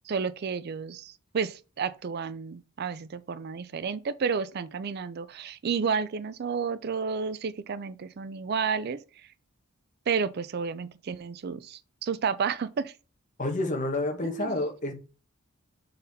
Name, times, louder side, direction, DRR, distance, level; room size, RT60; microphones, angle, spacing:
voice 1, 0.1-9.0 10.1-12.9 14.2-14.6, right 6 dB, 50° right, 0.4 m, -31 dB
voice 2, 13.4-14.9, left 2 dB, 40° left, 1.2 m, -29 dB
6.8 x 4.0 x 4.1 m
head